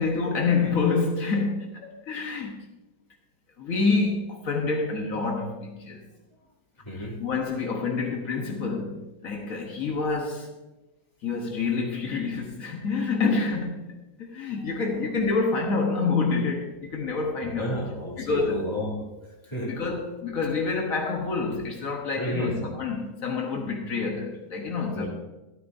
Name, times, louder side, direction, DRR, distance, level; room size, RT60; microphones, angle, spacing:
voice 1, 0.0-2.6 3.6-6.0 6.9-10.5 11.2-13.8 14.2-17.8 18.2-18.7 19.6-25.1, left 4 dB, 75° left, 1 dB, 1.7 m, -27 dB
voice 2, 17.4-19.0 19.4-19.7 22.2-22.6 24.9-25.1, equal, 20° left, -4 dB, 2.9 m, -32 dB
13.0 x 13.0 x 2.7 m, 1.0 s
omnidirectional pair, 1.5 m